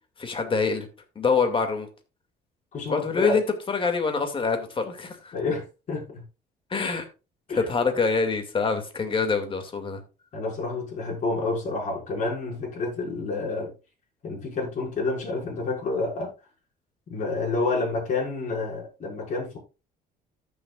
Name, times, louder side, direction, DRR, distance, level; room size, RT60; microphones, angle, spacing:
voice 1, 0.2-0.9 1.2-1.9 2.9-5.3 6.7-7.0 7.5-10.0, left 4 dB, 30° left, 2.3 m, -25 dB
voice 2, 2.7-3.3 5.3-6.2 7.5-7.7 10.3-13.7 14.2-16.3 17.1-19.6, left 3 dB, 45° left, 5.6 m, -29 dB
14.0 x 7.0 x 2.4 m
cardioid pair, 110°, 17 cm